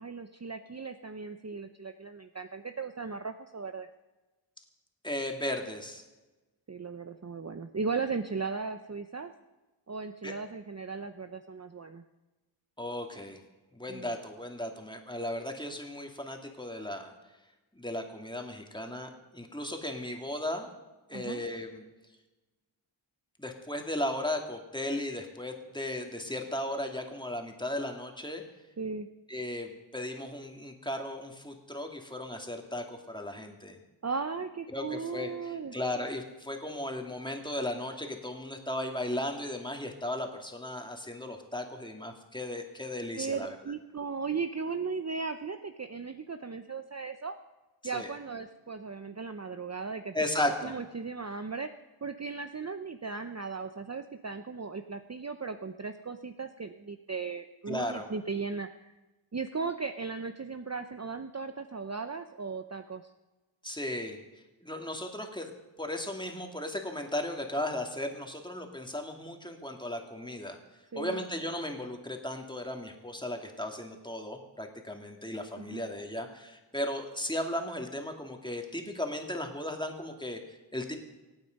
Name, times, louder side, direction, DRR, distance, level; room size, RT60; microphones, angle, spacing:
voice 1, 0.0-3.9 6.7-9.3 9.9-12.0 13.9-14.1 21.1-21.4 28.8-29.1 34.0-35.7 43.2-47.4 47.8-50.1 50.6-51.7 52.0-58.9 59.3-63.1 70.9-71.2 75.6-75.9, right 4 dB, 35° right, 8 dB, 0.7 m, -37 dB
voice 2, 5.0-6.0 10.2-10.3 12.8-13.4 13.7-17.1 17.8-20.7 21.1-21.9 23.4-28.4 29.3-33.8 34.7-43.6 47.9-48.1 50.1-50.7 57.7-58.1 63.6-65.5 65.8-70.6 70.9-81.0, left 1 dB, 10° left, 3 dB, 2.5 m, -36 dB
25.5 x 9.1 x 5.3 m, 1.1 s
wide cardioid pair, 65°, 48 cm